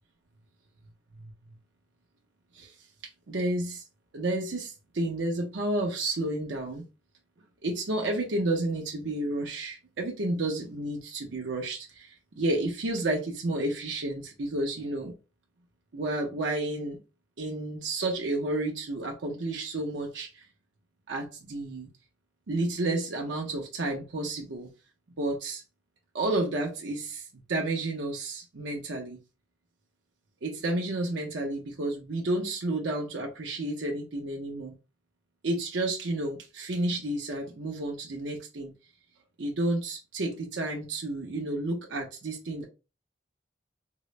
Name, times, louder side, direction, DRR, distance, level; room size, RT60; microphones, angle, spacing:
voice 1, 3.3-3.8 4.1-6.8 7.6-15.1 15.9-17.0 17.4-20.5 21.1-21.9 22.5-24.7 25.2-25.6 26.1-29.2 30.4-34.7 35.4-38.7 39.4-42.6, right 2 dB, 75° right, 0 dB, 0.6 m, -31 dB
3.7 x 2.0 x 3.1 m, 0.30 s
head